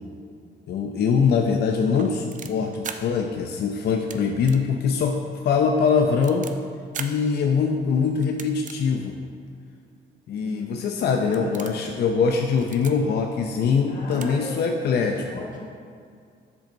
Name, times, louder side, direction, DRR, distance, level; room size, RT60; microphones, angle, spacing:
voice 1, 0.7-5.2 5.4-6.5 7.0-9.2 10.3-15.2, left 5 dB, 55° left, 3 dB, 0.4 m, -23 dB
sound 1, 1.9-3.0 3.9-4.2 4.4-4.6 5.0-5.1 5.6-6.5 6.9-7.1 8.2-8.8 9.4-9.5 10.4-10.5 10.9-11.1 11.3-11.8 12.5-12.9 13.8-13.9 14.1-14.3 14.5-14.6, right 7 dB, 40° right, 0.4 m, -38 dB
voice 2, 10.4-11.7 13.8-14.5 15.0-15.6, left 1 dB, 40° left, -4 dB, 1.4 m, -37 dB
7.1 x 5.2 x 2.6 m, 2.2 s
cardioid pair, 90°, 20 cm